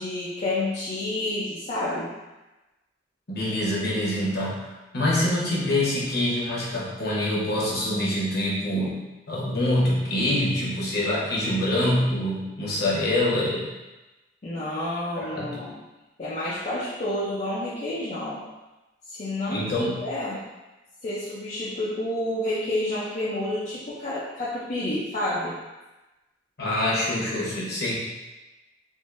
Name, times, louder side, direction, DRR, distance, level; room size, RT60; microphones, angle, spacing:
voice 1, 0.0-2.1 14.4-15.8 16.2-18.4 19.1-20.5 21.0-25.6, left 1 dB, 40° left, -8 dB, 0.5 m, -29 dB
voice 2, 3.3-13.7 15.3-15.6 19.5-20.0 26.6-28.0, left 1 dB, 60° left, -6 dB, 1.0 m, -25 dB
3.7 x 2.5 x 2.5 m, 1.1 s
head